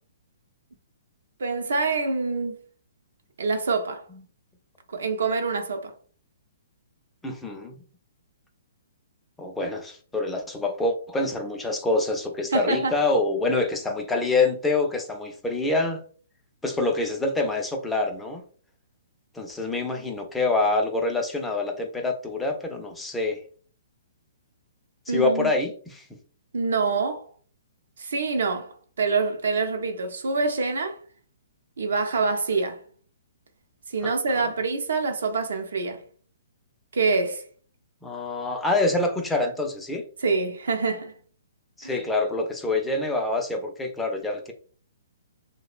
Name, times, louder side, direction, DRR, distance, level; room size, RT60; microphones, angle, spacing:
voice 1, 1.4-2.6 3.4-4.0 4.9-5.9 12.5-13.0 25.1-25.5 26.5-27.2 28.0-31.0 31.8-32.8 33.9-36.0 36.9-37.4 40.2-41.1 41.8-41.9, right 4 dB, 75° right, 0.5 m, -26 dB
voice 2, 7.2-7.8 9.4-16.0 16.6-18.4 19.3-23.4 25.1-26.0 34.0-34.5 38.0-40.0 41.8-44.5, left 2 dB, 10° left, 0.5 m, -26 dB
2.7 x 2.0 x 2.4 m
hypercardioid pair, 135°, 0 cm